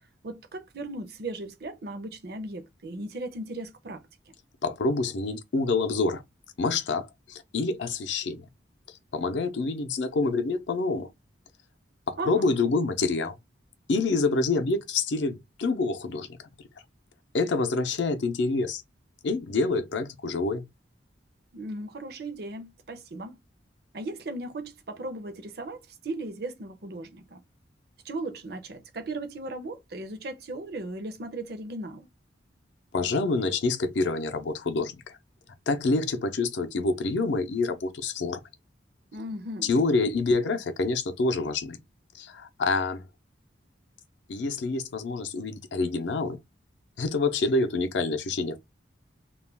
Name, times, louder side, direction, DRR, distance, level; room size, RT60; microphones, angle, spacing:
voice 1, 0.2-4.3 12.2-12.5 21.5-23.4 23.9-27.4 28.0-32.1 39.1-39.7, right 2 dB, 55° right, 0.5 m, -37 dB
voice 2, 4.6-6.2 6.6-8.5 8.9-11.1 12.1-13.4 13.9-16.4 17.3-18.8 19.2-20.6 32.9-35.2 35.7-38.4 39.6-41.8 42.1-43.0 44.3-46.4 47.0-48.6, left 3 dB, 70° left, 0.5 m, -27 dB
2.4 x 2.1 x 3.2 m
head